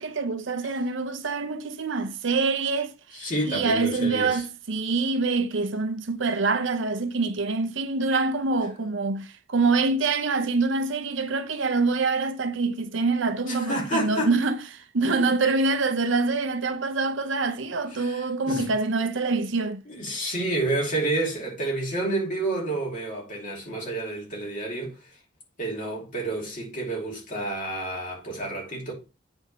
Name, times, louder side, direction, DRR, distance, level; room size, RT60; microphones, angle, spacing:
voice 1, 0.0-19.8, right 3 dB, 65° right, 0.7 m, -25 dB
voice 2, 3.1-4.4 13.5-14.3 17.9-18.7 19.9-25.0 25.6-28.9, right 2 dB, 40° left, 2.7 m, -29 dB
8.3 x 3.5 x 5.5 m
head